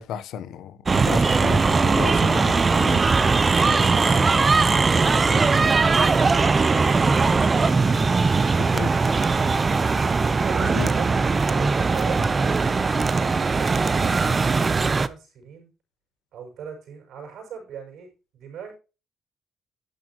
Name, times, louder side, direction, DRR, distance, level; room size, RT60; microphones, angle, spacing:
voice 1, 0.0-3.0 8.7-8.9 10.7-10.9, left 8 dB, 85° left, 1.0 m, -33 dB
sound 1, 0.9-15.1, right 4 dB, 30° right, 0.8 m, -20 dB
voice 2, 10.2-11.1 11.4-12.8 13.1-15.7 16.3-18.7, right 7 dB, 75° right, 6.5 m, -41 dB
12.0 x 9.2 x 3.0 m
cardioid pair, 90°, 0 cm